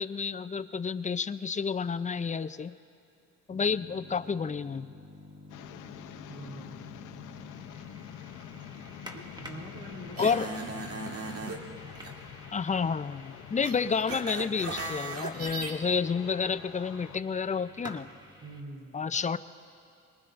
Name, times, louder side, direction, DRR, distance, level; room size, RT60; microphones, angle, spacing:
voice 1, 0.0-2.7 3.5-4.9 10.2-10.5 12.5-18.1 18.9-19.4, left 5 dB, 25° left, 13 dB, 0.5 m, -30 dB
sound 1, 3.5-18.6, left 1 dB, 15° right, 1.5 m, -50 dB
sound 2, 5.5-17.2, left 11 dB, 80° left, 0.7 m, -47 dB
voice 2, 6.3-6.9 9.1-10.3 18.4-19.0, right 1 dB, 80° right, -3 dB, 3.1 m, -44 dB
sound 3, 10.2-11.6 11.9-12.1 13.6-15.7, right 2 dB, 55° right, 1.7 m, -37 dB
25.5 x 21.5 x 2.6 m, 2.5 s
cardioid pair, 90°, 30 cm